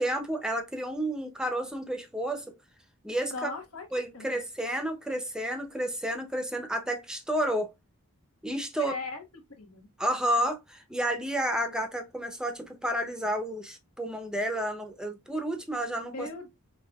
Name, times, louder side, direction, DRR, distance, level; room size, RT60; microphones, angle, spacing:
voice 1, 0.0-2.5 3.0-3.3 3.9-7.7 8.4-8.9 10.0-16.3, right 1 dB, 5° right, 0.7 m, -31 dB
voice 2, 3.3-3.9 4.1-4.4 8.8-9.2 9.5-9.9 16.1-16.6, left 3 dB, 70° left, 1.2 m, -38 dB
5.4 x 2.5 x 2.3 m
head